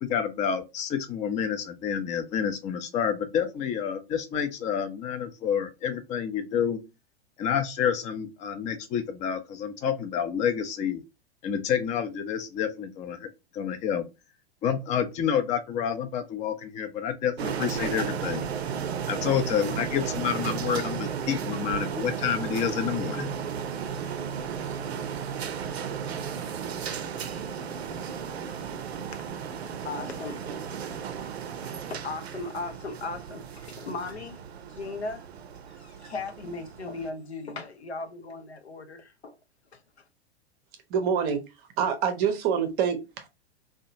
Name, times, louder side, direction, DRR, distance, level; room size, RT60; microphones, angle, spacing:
voice 1, 0.0-6.8 7.4-11.0 11.4-13.3 13.5-14.0 14.6-18.5 19.1-23.3, left 8 dB, 25° left, 0.4 m, -29 dB
sound 1, 17.4-37.1, right 7 dB, 75° right, 0.5 m, -34 dB
voice 2, 29.8-30.4 30.8-30.9 31.7-34.4 34.8-35.2 36.0-39.3, left 3 dB, 85° left, 0.6 m, -37 dB
voice 3, 40.9-41.4 41.8-43.3, right 7 dB, 30° right, 0.6 m, -26 dB
2.7 x 2.2 x 2.6 m
figure-of-eight pair, 95°, 32 cm